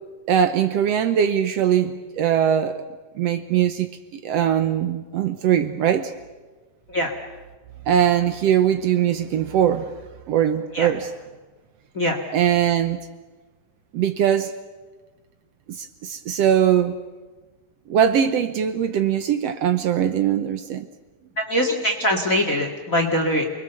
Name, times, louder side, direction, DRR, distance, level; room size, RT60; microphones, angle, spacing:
voice 1, 0.3-2.8 3.2-6.1 7.9-9.9 10.3-11.1 12.3-13.0 13.9-14.5 15.7-17.0 17.9-20.9, right 9 dB, 65° right, 9 dB, 1.8 m, -21 dB
voice 2, 21.4-23.5, equal, 30° left, 2 dB, 2.1 m, -22 dB
28.5 x 21.0 x 7.0 m, 1.3 s
omnidirectional pair, 3.4 m